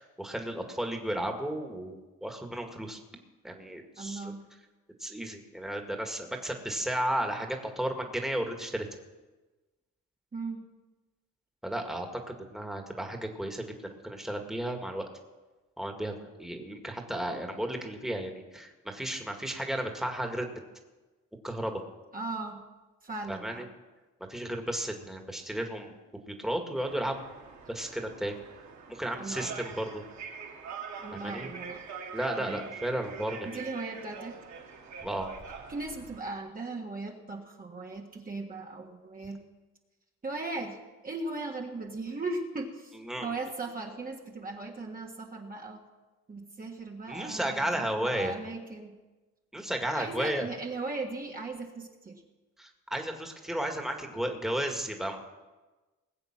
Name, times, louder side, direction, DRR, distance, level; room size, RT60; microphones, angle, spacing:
voice 1, 0.0-3.0 3.4-4.3 5.0-8.9 11.6-15.1 15.8-20.6 21.4-21.8 23.3-23.6 24.3-27.2 27.7-28.4 28.9-30.0 31.1-31.5 32.1-33.6 35.0-35.3 43.0-43.3 47.1-48.3 49.5-50.5 52.6-55.2, right 1 dB, ahead, 3 dB, 1.9 m, -34 dB
voice 2, 4.0-4.4 10.3-10.6 22.1-22.6 23.0-23.7 29.2-29.6 31.0-31.8 32.4-32.7 33.4-34.4 35.7-39.4 40.2-45.8 46.3-49.0 49.9-52.2, right 3 dB, 30° right, 0 dB, 1.6 m, -38 dB
sound 1, 26.8-36.2, right 5 dB, 65° right, 2.3 m, -44 dB
20.0 x 7.8 x 6.0 m, 1.2 s
cardioid pair, 90°, 30 cm